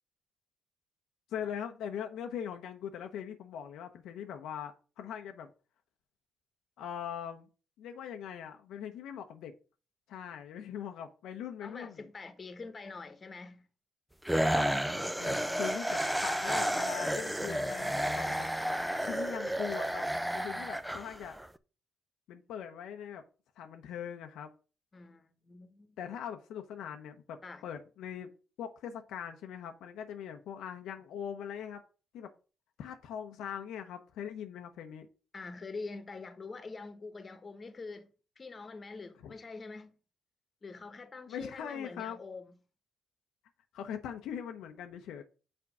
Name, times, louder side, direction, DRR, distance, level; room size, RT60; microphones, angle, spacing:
voice 1, 1.3-5.5 6.8-7.5 7.8-9.5 10.1-12.1 14.4-18.5 18.9-20.1 20.3-21.4 22.3-23.2 23.6-24.5 26.0-28.3 28.6-31.8 32.1-32.3 32.8-35.1 39.2-39.3 41.3-42.2 43.7-45.2, left 8 dB, 85° left, 0.7 m, -41 dB
voice 2, 11.6-13.7 24.9-26.2 27.4-27.6 35.3-38.1 38.4-40.0 40.6-42.5, left 3 dB, 35° left, 1.2 m, -45 dB
sound 1, 14.2-21.5, equal, 5° right, 0.5 m, -32 dB
6.1 x 4.5 x 5.9 m
cardioid pair, 90°, 0 cm